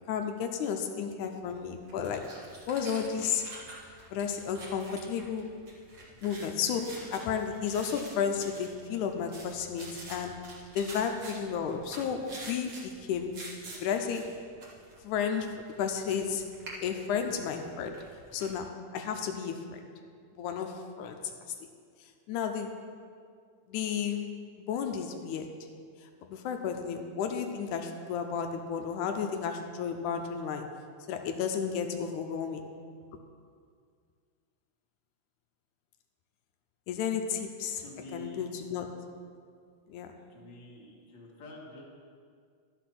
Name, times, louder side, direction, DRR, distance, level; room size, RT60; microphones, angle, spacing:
voice 1, 0.1-2.3 2.7-3.5 4.1-5.5 6.2-10.4 10.8-13.4 13.8-14.4 15.0-16.5 16.8-18.0 18.3-19.9 20.3-21.2 22.3-22.8 23.7-25.6 26.0-30.7 31.1-32.7 36.9-37.8 38.1-38.9 39.9-40.2, left 7 dB, 90° left, 5 dB, 2.1 m, -33 dB
sound 1, 1.4-18.5, right 2 dB, 45° right, 2.0 m, -48 dB
voice 2, 37.8-38.5 40.3-41.8, left 1 dB, 45° left, -3 dB, 2.0 m, -48 dB
12.0 x 5.9 x 5.9 m, 2.1 s
omnidirectional pair, 3.4 m